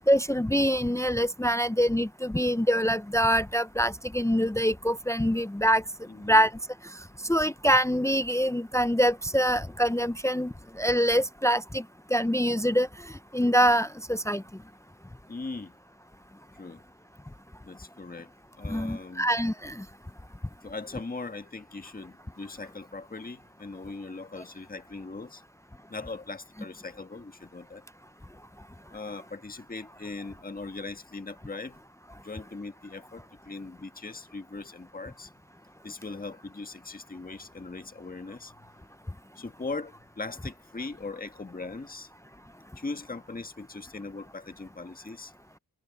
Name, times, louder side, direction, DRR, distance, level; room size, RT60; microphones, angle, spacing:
voice 1, 0.1-5.8 6.2-6.5 7.3-11.8 12.1-12.9 13.3-14.4 18.6-19.8, equal, 10° left, 0.7 m, -24 dB
voice 2, 6.1-6.4 15.3-15.7 16.6-16.8 17.6-18.3 18.6-19.3 20.6-25.4 25.9-27.8 28.9-31.8 32.2-35.3 35.8-38.5 39.3-42.1 42.8-45.3, left 3 dB, 25° left, 1.6 m, -40 dB
cardioid pair, 55°, 38 cm